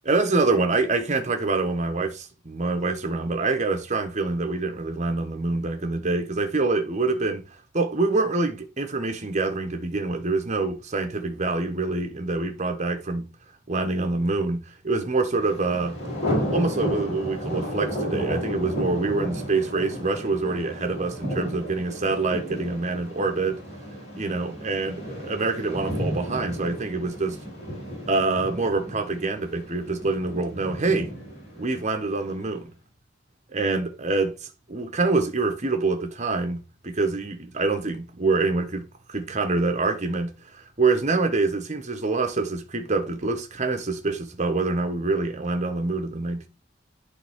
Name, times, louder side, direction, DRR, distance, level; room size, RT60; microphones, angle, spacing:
voice 1, 0.0-7.4 7.7-13.3 13.7-16.0 16.5-23.6 24.1-27.4 28.1-31.1 31.6-32.7 33.5-46.5, right 3 dB, 40° right, 1.1 m, -26 dB
Thunder, 15.4-32.3, equal, 40° left, 4.4 m, -33 dB
10.5 x 3.6 x 3.5 m
head